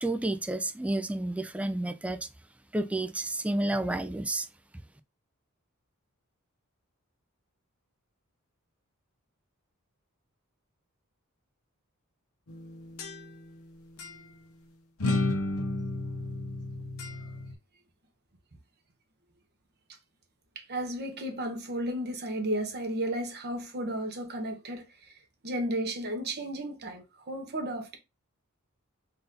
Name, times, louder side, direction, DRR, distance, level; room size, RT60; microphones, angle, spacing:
voice 1, 0.0-2.3 2.7-4.5, right 1 dB, 5° right, 0.3 m, -30 dB
sound 1, 12.5-13.6 14.0-14.2 15.0-17.5, left 2 dB, 75° left, 0.9 m, -32 dB
voice 2, 20.6-25.1 25.4-28.0, right 1 dB, 50° right, 1.1 m, -33 dB
4.0 x 2.6 x 4.0 m
head